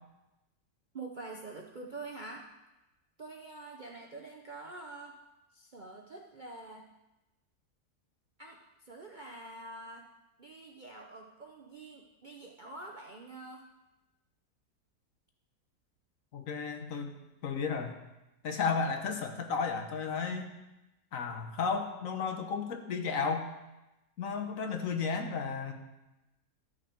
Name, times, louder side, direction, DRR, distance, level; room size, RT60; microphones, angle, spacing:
voice 1, 0.9-2.5 3.2-5.2 5.5-6.9 8.4-10.1 10.4-13.7, right 3 dB, 45° right, 0 dB, 0.6 m, -46 dB
voice 2, 16.3-17.2 17.4-18.0 18.4-20.5 21.1-23.5 24.2-25.7, left 5 dB, 60° left, 5 dB, 1.3 m, -33 dB
13.0 x 6.5 x 4.4 m, 0.98 s
omnidirectional pair, 1.7 m